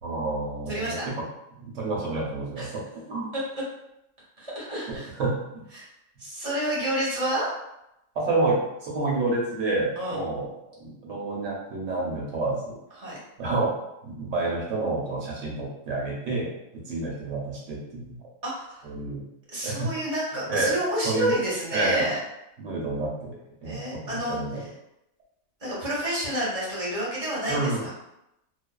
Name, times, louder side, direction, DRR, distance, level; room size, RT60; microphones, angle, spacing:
voice 1, 0.0-1.0 1.6-2.8 3.1-3.3 4.9-5.3 8.1-10.5 10.8-12.7 13.4-13.7 14.0-18.2 18.8-19.2 19.6-19.9 20.5-20.7 21.0-21.3 21.7-22.1 22.6-23.4 23.6-24.6 27.5-27.9, right 2 dB, 65° right, -3 dB, 1.0 m, -29 dB
voice 2, 0.7-1.1 2.6-2.7 3.3-3.4 4.4-5.1 5.7-5.9 6.2-7.5 10.0-10.2 13.0-13.2 18.4-18.9 19.5-22.2 23.6-24.7 25.6-27.9, right 1 dB, 30° right, -7 dB, 0.9 m, -29 dB
2.5 x 2.2 x 2.2 m, 0.85 s
omnidirectional pair, 1.4 m